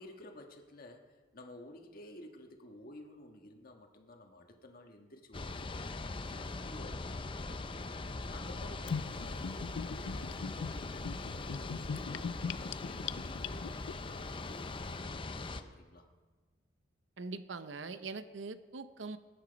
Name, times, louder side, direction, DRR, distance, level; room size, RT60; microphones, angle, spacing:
voice 1, 0.0-6.0 6.3-7.1 7.4-7.7 8.3-12.3 12.6-16.1, left 1 dB, 50° left, 3 dB, 1.5 m, -53 dB
sound 1, 5.3-15.6, left 3 dB, 30° left, 0.6 m, -41 dB
Gurgling / Bathtub (filling or washing), 8.9-13.9, left 6 dB, 90° left, 0.5 m, -40 dB
Bass guitar, 16.4-16.8, left 1 dB, 15° right, 2.6 m, -64 dB
voice 2, 17.2-19.2, right 4 dB, 90° right, 12 dB, 0.7 m, -42 dB
18.0 x 10.5 x 5.2 m, 1.3 s
head